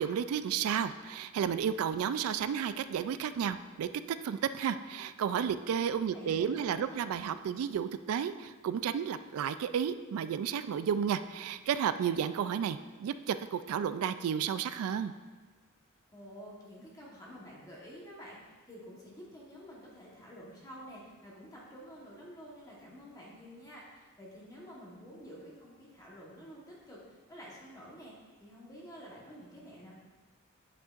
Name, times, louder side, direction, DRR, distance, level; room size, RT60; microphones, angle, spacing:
voice 1, 0.0-15.1, right 8 dB, 75° right, 14 dB, 0.3 m, -32 dB
voice 2, 6.1-7.0 16.1-18.4 18.7-29.9, equal, 15° left, -5 dB, 1.1 m, -50 dB
8.4 x 6.4 x 2.4 m, 1.3 s
head